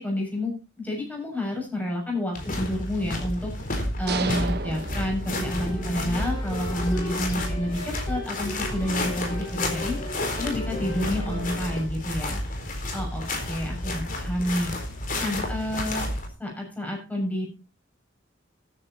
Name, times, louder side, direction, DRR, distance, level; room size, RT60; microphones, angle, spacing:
voice 1, 0.0-3.5 4.0-10.0 10.4-12.4 12.7-14.7 15.2-16.1 16.4-17.5, left 1 dB, 10° left, -1 dB, 6.9 m, -29 dB
sound 1, 2.3-16.3, left 1 dB, 45° left, 4.3 m, -31 dB
sound 2, 4.1-5.9, right 4 dB, 60° right, 1.3 m, -32 dB
sound 3, 5.3-11.8, left 1 dB, 30° left, 5.0 m, -37 dB
14.0 x 10.5 x 4.3 m, 0.31 s
head